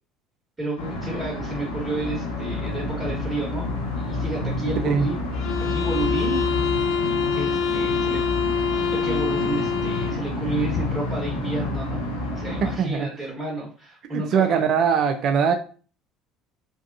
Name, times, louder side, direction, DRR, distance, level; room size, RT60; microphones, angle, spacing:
voice 1, 0.6-3.7 3.9-5.2 5.7-6.4 7.3-8.2 8.9-14.6, right 2 dB, 20° right, 1.3 m, -31 dB
sound 1, 0.8-12.8, left 2 dB, 80° left, 0.7 m, -29 dB
sound 2, 5.3-10.3, left 5 dB, 55° left, 0.3 m, -25 dB
voice 2, 12.6-13.1 14.1-15.5, right 7 dB, 50° right, 0.4 m, -21 dB
3.5 x 2.2 x 2.5 m
figure-of-eight pair, 60°, 0 cm